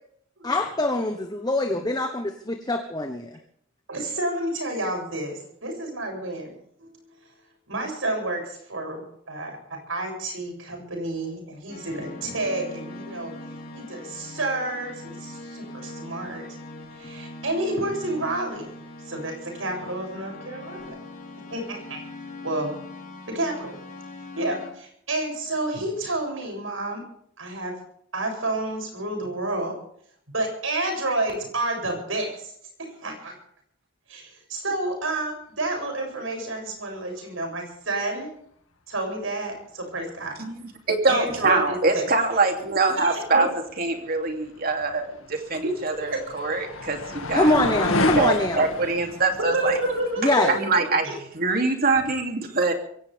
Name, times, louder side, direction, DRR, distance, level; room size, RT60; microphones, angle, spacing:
voice 1, 0.4-3.4 47.3-48.7 50.2-50.5, left 1 dB, 20° left, 5 dB, 1.2 m, -24 dB
voice 2, 3.9-6.5 6.8-6.9 7.7-13.3 13.7-16.4 16.9-18.7 19.1-21.0 21.5-22.0 22.4-22.7 23.3-23.8 24.3-27.0 27.4-27.8 28.1-29.8 30.3-32.5 32.8-33.3 34.1-38.3 38.9-40.4 41.1-42.1 43.0-43.5 46.1-46.2 49.4-51.1, right 2 dB, 75° right, 2 dB, 7.6 m, -30 dB
sound 1, 11.7-24.7, left 1 dB, 45° left, 4.1 m, -41 dB
voice 3, 40.4-43.5 43.8-47.6 48.1-49.8 50.5-52.7, right 3 dB, 45° right, 4 dB, 3.0 m, -24 dB
sound 2, 45.0-50.3, left 2 dB, 90° left, 2.1 m, -29 dB
23.0 x 17.0 x 3.6 m, 0.65 s
head